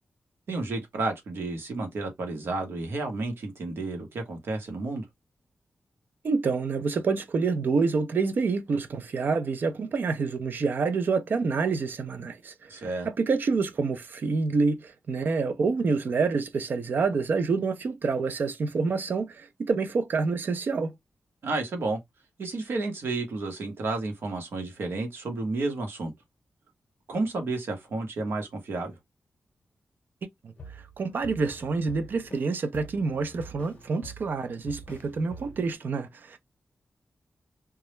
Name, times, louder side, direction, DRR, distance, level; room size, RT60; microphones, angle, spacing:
voice 1, 0.5-5.0 12.7-13.1 21.4-22.0 22.4-26.1 27.1-28.9, right 3 dB, 75° right, 0.9 m, -31 dB
voice 2, 6.2-12.5 13.0-20.9 31.0-36.4, right 4 dB, 55° right, 0.4 m, -27 dB
sound 1, 30.6-32.5 32.7-35.8, right 1 dB, 35° left, 0.8 m, -46 dB
2.3 x 2.0 x 3.0 m
wide cardioid pair, 165°, 4 cm